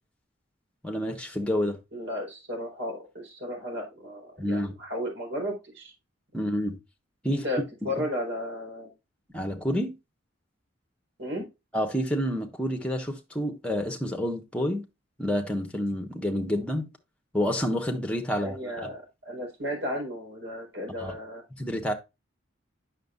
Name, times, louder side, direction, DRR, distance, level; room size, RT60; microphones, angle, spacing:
voice 1, 0.8-1.8 4.4-4.7 6.3-6.8 7.2-7.4 9.3-9.9 11.7-14.8 15.2-16.9 17.3-18.9 21.0-21.1 21.6-21.9, equal, 5° left, 1.2 m, -28 dB
voice 2, 1.9-5.9 7.3-8.9 11.2-11.5 18.3-21.4, equal, 65° right, 4.7 m, -34 dB
9.0 x 6.5 x 2.5 m
head